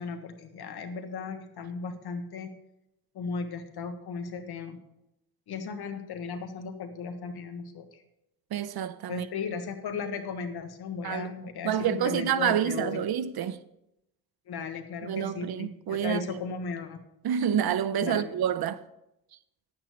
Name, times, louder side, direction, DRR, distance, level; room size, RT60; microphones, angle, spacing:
voice 1, 0.0-2.5 3.1-4.8 5.5-8.0 9.1-13.0 14.5-17.0 18.0-18.3, left 5 dB, 90° left, 1.5 m, -36 dB
voice 2, 8.5-9.3 11.0-11.3 11.6-13.6 15.0-16.4 17.2-18.8, right 9 dB, 80° right, 0.8 m, -28 dB
11.0 x 8.9 x 5.1 m
cardioid pair, 90°, 37 cm